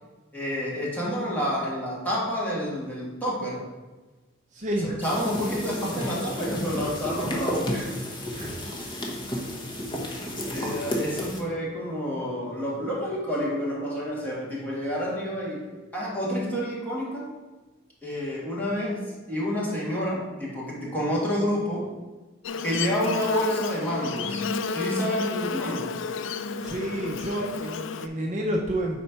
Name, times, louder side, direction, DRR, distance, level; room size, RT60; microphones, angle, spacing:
voice 1, 0.3-3.6 4.8-7.9 10.5-17.3 18.0-19.0 19.3-21.8 22.6-24.4 24.7-25.9, equal, 10° left, -6 dB, 1.7 m, -29 dB
voice 2, 4.5-5.0 8.3-8.6 26.6-29.0, right 1 dB, 40° right, 0 dB, 0.6 m, -29 dB
sound 1, 5.0-11.4, equal, 25° left, 0.9 m, -32 dB
Buzz, 22.4-28.1, left 5 dB, 65° left, 0.3 m, -31 dB
4.3 x 4.2 x 5.7 m, 1.2 s
head